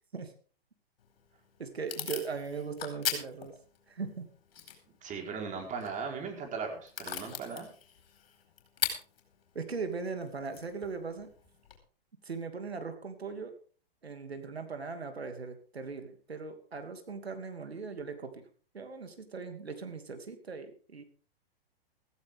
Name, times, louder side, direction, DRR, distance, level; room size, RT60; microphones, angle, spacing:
Packing tape duct tape / Tearing, 1.0-11.8, left 8 dB, 70° left, 4.7 m, -42 dB
voice 1, 1.6-3.6 3.9-4.3 9.5-11.3 12.2-13.5 14.0-18.4 18.7-21.0, right 5 dB, 90° right, 7 dB, 2.8 m, -39 dB
voice 2, 5.0-7.7, right 5 dB, 25° right, 3 dB, 4.5 m, -38 dB
15.5 x 15.5 x 3.7 m, 0.41 s
hypercardioid pair, 115°, 30 cm